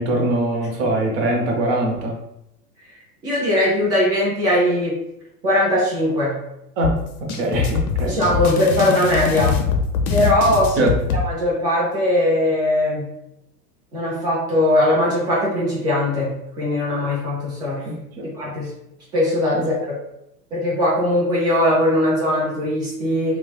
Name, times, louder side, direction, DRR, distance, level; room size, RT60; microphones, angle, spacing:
voice 1, 0.0-2.1 6.8-6.9 7.2-8.2 10.8-10.9 17.9-18.2, right 1 dB, 40° right, 1 dB, 0.8 m, -22 dB
voice 2, 3.2-4.9 5.4-6.4 8.0-9.6 10.1-10.9 11.2-13.1 13.9-17.9 18.3-18.7 19.1-20.0 20.5-23.4, left 1 dB, 10° right, -6 dB, 0.3 m, -20 dB
sound 1, 6.8-11.2, left 6 dB, 60° left, 0.6 m, -23 dB
3.1 x 2.1 x 2.3 m, 0.83 s
hypercardioid pair, 100°, 49 cm